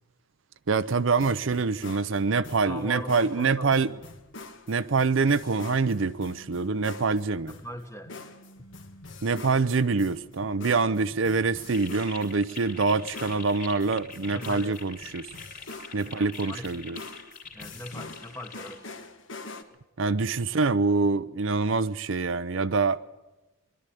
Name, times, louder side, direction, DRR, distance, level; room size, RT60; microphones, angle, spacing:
voice 1, 0.7-3.9 4.7-7.5 9.2-15.3 15.9-17.0 20.0-23.0, right 4 dB, 60° right, 0.6 m, -25 dB
sound 1, 0.8-19.6, left 3 dB, 60° left, 1.5 m, -45 dB
voice 2, 2.6-4.0 7.5-8.1 14.3-14.8 16.0-16.8 17.5-18.9, left 1 dB, 15° left, 1.3 m, -40 dB
sound 2, 6.0-7.1 8.0-9.1 10.1-11.1, right 1 dB, 85° left, 2.8 m, -52 dB
sound 3, 11.7-18.8, left 4 dB, 40° left, 3.0 m, -44 dB
21.5 x 12.0 x 10.0 m
head